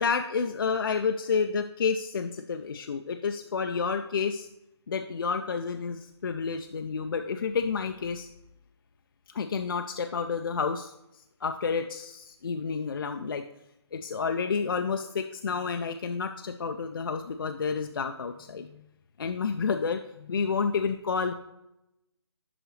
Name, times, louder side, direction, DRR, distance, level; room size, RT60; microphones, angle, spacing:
voice 1, 0.0-4.5 4.9-8.3 9.3-10.9 11.4-13.4 13.9-18.8 19.2-21.3, left 5 dB, 50° left, 6 dB, 0.4 m, -30 dB
11.0 x 3.9 x 3.1 m, 0.86 s
hypercardioid pair, 170°, 15 cm